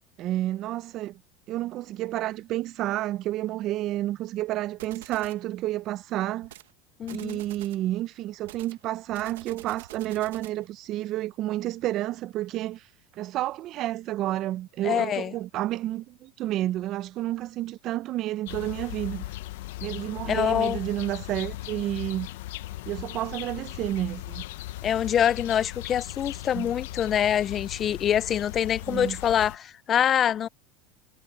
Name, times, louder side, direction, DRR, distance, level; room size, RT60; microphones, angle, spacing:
voice 1, 0.2-1.2 1.5-6.5 7.1-12.9 13.1-19.2 19.8-22.3 22.9-24.4 26.5-26.7 28.9-29.2, right 14 dB, 45° right, 0.6 m, -30 dB
sound 1, 4.8-5.4 6.4-6.7 7.0-7.9 8.4-10.7, right 13 dB, 85° right, 1.1 m, -47 dB
voice 2, 7.0-7.4 14.8-15.3 20.3-20.8 24.8-30.5, left 9 dB, 30° left, 0.3 m, -25 dB
sound 2, 18.5-29.6, left 16 dB, 75° left, 0.6 m, -38 dB
supercardioid pair, 130°, 0 cm